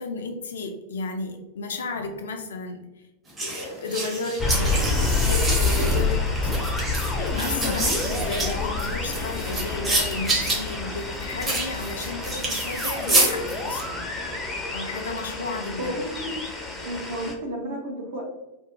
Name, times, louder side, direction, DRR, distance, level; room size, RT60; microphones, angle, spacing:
voice 1, 0.0-2.9 3.4-6.5 7.1-14.1 14.7-15.9, left 3 dB, 65° left, 5 dB, 0.4 m, -33 dB
sound 1, 3.4-13.8, right 2 dB, 20° right, 0.8 m, -27 dB
sound 2, 4.4-17.3, left 3 dB, 10° left, 0.5 m, -28 dB
voice 2, 15.8-16.3 16.8-18.3, equal, 60° right, -2 dB, 0.9 m, -32 dB
2.6 x 2.2 x 2.7 m, 1.0 s
figure-of-eight pair, 90°, 0 cm